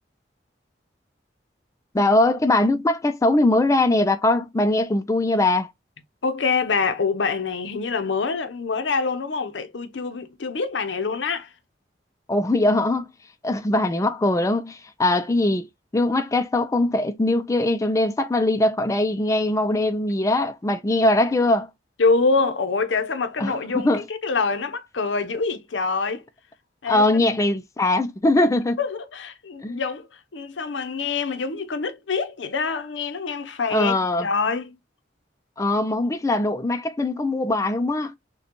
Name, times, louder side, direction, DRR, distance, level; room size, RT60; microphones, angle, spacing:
voice 1, 1.9-5.7 12.3-13.1 13.4-15.7 15.9-21.7 23.4-24.0 26.9-28.8 29.6-29.8 33.7-34.3 35.6-38.1, left 2 dB, 15° left, 0.4 m, -21 dB
voice 2, 6.2-11.5 22.0-26.2 26.8-27.0 28.8-30.1 30.3-33.9 34.2-34.8, left 4 dB, 80° left, 0.7 m, -25 dB
6.5 x 2.3 x 3.0 m
head